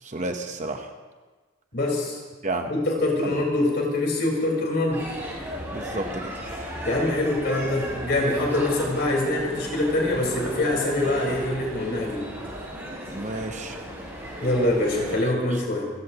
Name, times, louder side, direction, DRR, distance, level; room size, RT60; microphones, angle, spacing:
voice 1, 0.0-0.9 2.4-2.7 3.2-3.4 5.7-6.3 13.1-13.8 15.1-15.2, right 2 dB, 35° right, 5 dB, 0.9 m, -31 dB
voice 2, 1.7-2.2 2.7-5.0 6.8-12.2 14.4-15.9, left 1 dB, 50° left, -1 dB, 4.5 m, -24 dB
sound 1, 4.9-15.2, equal, 10° right, 6.1 m, -35 dB
28.0 x 14.5 x 2.9 m, 1.3 s
head